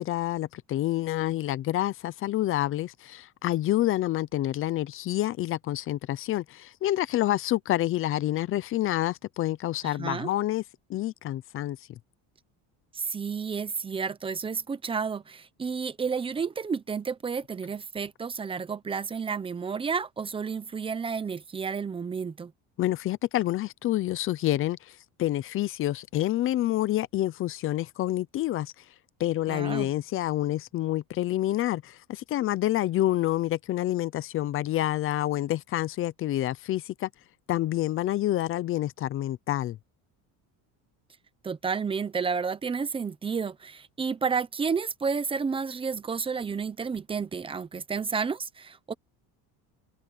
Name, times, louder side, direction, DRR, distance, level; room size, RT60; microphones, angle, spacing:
voice 1, 0.0-10.6 10.9-11.8 22.8-28.7 29.2-37.1 37.5-39.8, left 14 dB, 35° left, 0.5 m, -28 dB
voice 2, 9.8-10.3 12.9-22.5 29.5-29.9 41.4-48.9, right 5 dB, 15° right, 0.8 m, -31 dB
cardioid pair, 165°, 38 cm